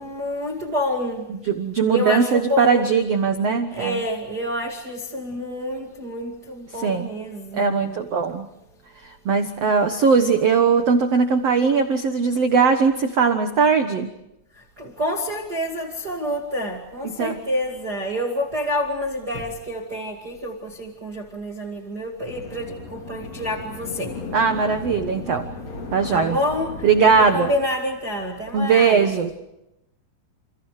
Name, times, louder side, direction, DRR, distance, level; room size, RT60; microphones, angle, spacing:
voice 1, 0.0-1.2 1.9-2.9 3.7-8.0 14.8-24.1 26.1-26.8 27.3-29.1, left 1 dB, 30° right, 1 dB, 2.1 m, -28 dB
voice 2, 1.3-4.0 6.7-7.1 7.5-8.5 9.0-14.1 17.0-17.4 24.3-25.5 25.9-26.4 26.8-27.5 28.5-29.4, right 5 dB, 85° right, 7 dB, 1.4 m, -20 dB
sound 1, 22.2-27.6, left 3 dB, 40° left, 3.8 m, -36 dB
29.0 x 29.0 x 4.9 m, 0.87 s
omnidirectional pair, 4.9 m